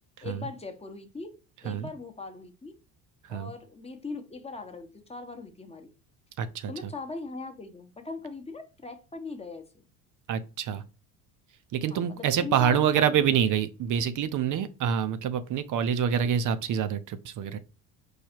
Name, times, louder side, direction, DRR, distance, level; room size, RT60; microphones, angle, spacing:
voice 1, 0.2-1.3 1.6-2.7 3.3-5.9 6.7-9.7 11.9-13.3, left 3 dB, 10° left, 0.9 m, -40 dB
voice 2, 6.4-6.9 10.3-10.8 11.7-17.6, right 8 dB, 40° right, 0.5 m, -26 dB
4.8 x 2.3 x 4.4 m
hypercardioid pair, 75°, 50 cm